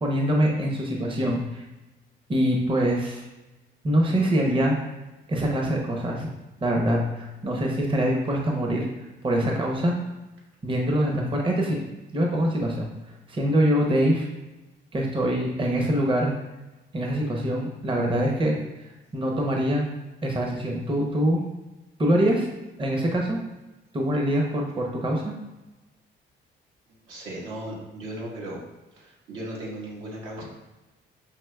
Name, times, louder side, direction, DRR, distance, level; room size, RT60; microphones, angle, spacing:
voice 1, 0.0-1.6 2.3-3.2 3.8-4.8 5.3-6.3 6.6-8.9 9.2-9.9 10.6-11.8 12.1-12.9 13.3-14.3 14.9-16.3 16.9-18.6 19.1-19.9 20.2-21.4 22.0-22.5 22.8-23.4 23.9-25.3, equal, 25° right, 0 dB, 0.7 m, -24 dB
voice 2, 27.1-28.6 28.9-30.4, right 1 dB, 85° right, -5 dB, 1.4 m, -36 dB
5.7 x 2.9 x 2.3 m, 1.1 s
cardioid pair, 90°, 20 cm